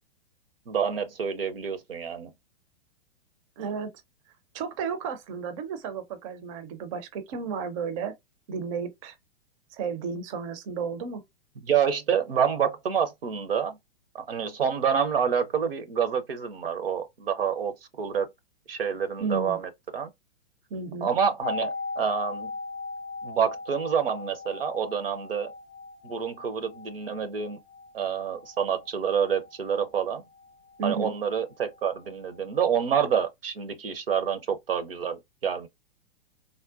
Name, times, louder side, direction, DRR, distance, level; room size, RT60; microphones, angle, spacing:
voice 1, 0.7-2.3 11.6-13.8 14.1-18.3 18.7-20.1 21.0-22.5 23.2-25.5 26.0-27.6 27.9-30.2 30.8-35.7, right 7 dB, 65° right, 0.7 m, -27 dB
voice 2, 3.6-3.9 4.5-8.1 8.5-9.2 9.7-11.2 19.2-19.6 20.7-21.1 30.8-31.1, right 5 dB, 35° right, 0.5 m, -33 dB
sound 1, 21.4-31.2 31.4-31.5, left 3 dB, 30° left, 0.6 m, -39 dB
3.5 x 2.1 x 2.4 m
figure-of-eight pair, 105°, 31 cm